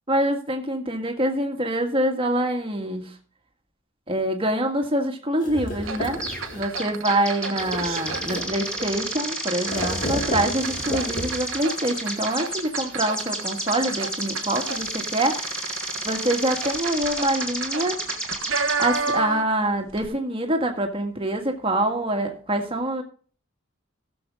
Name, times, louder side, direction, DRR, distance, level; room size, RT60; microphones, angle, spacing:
voice 1, 0.1-3.0 4.1-6.2 6.5-15.8 16.0-18.0 18.8-23.0, right 1 dB, 30° right, 3 dB, 1.8 m, -25 dB
sound 1, 5.4-6.8 7.5-9.1 9.6-11.6, left 1 dB, 45° left, 2.2 m, -32 dB
sound 2, 5.8-19.6 19.9-20.1, right 5 dB, 85° right, 1.0 m, -32 dB
sound 3, 6.2-6.5 6.8-19.1, right 1 dB, 5° left, 2.2 m, -32 dB
17.0 x 7.1 x 3.6 m, 0.42 s
head